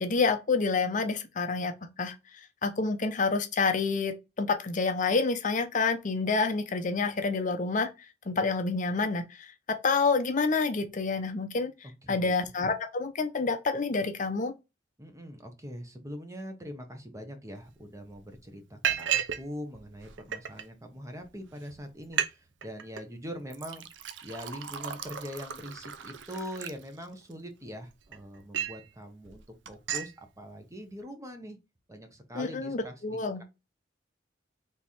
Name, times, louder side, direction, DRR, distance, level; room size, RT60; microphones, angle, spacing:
voice 1, 0.0-2.1 2.6-7.9 8.3-11.7 12.1-14.5 32.4-33.4, left 4 dB, 45° left, 0.6 m, -28 dB
voice 2, 12.0-12.3 15.0-23.8 24.2-31.6 31.9-33.4, equal, 15° right, 0.9 m, -42 dB
Liquid, 17.7-17.8 18.1-18.4 18.8-19.4 19.7-20.6 21.3-21.4 21.7-21.8 22.0-22.3 22.6-23.0 23.5-27.3 27.8-28.8 29.2-29.4 29.7-30.1, right 9 dB, 80° right, 0.6 m, -34 dB
3.6 x 3.3 x 4.2 m
head